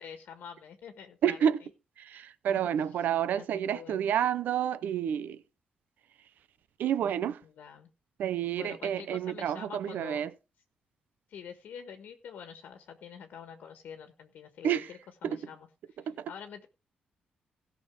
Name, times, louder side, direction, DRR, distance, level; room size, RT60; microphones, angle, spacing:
voice 1, 0.0-1.5 2.5-2.6 3.4-4.0 7.4-7.9 8.6-10.3 11.3-16.7, left 7 dB, 80° left, 1.5 m, -46 dB
voice 2, 1.2-1.6 2.0-5.4 6.8-7.4 8.2-10.3 14.6-14.9 15.2-15.4 16.1-16.3, right 9 dB, 80° right, 0.8 m, -29 dB
16.5 x 6.1 x 4.7 m
wide cardioid pair, 160°, 3 cm